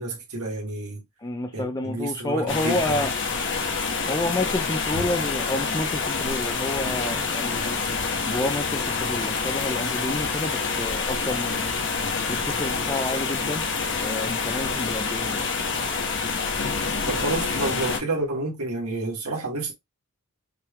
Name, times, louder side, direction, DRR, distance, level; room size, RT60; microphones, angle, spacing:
voice 1, 0.0-1.0 1.5-2.8 17.1-19.7, right 2 dB, 80° right, 1.5 m, -29 dB
voice 2, 1.2-3.1 4.1-7.8 8.3-11.6 12.3-13.6 14.0-15.5, left 2 dB, 15° left, 0.4 m, -29 dB
sound 1, 2.5-18.0, left 4 dB, 60° left, 1.2 m, -27 dB
5.7 x 2.3 x 3.5 m
head